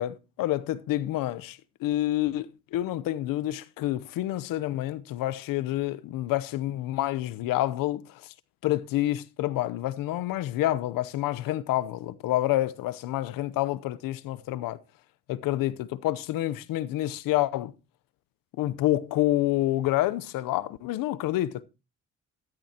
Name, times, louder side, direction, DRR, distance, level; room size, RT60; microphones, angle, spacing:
voice 1, 0.0-8.2 8.6-14.8 15.3-17.7 18.6-21.6, left 15 dB, 85° left, 0.8 m, -28 dB
14.0 x 12.0 x 2.9 m
supercardioid pair, 70°, 33 cm